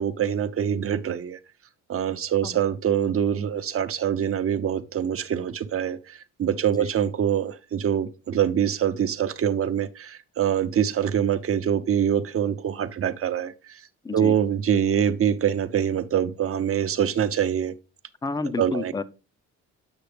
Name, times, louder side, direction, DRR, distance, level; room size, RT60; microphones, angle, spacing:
voice 1, 0.0-1.4 1.9-13.8 14.1-17.7 18.6-18.9, right 9 dB, 50° right, 0.7 m, -24 dB
voice 2, 18.2-19.0, left 3 dB, 15° left, 0.5 m, -30 dB
8.0 x 6.0 x 3.3 m
cardioid pair, 90°, 30 cm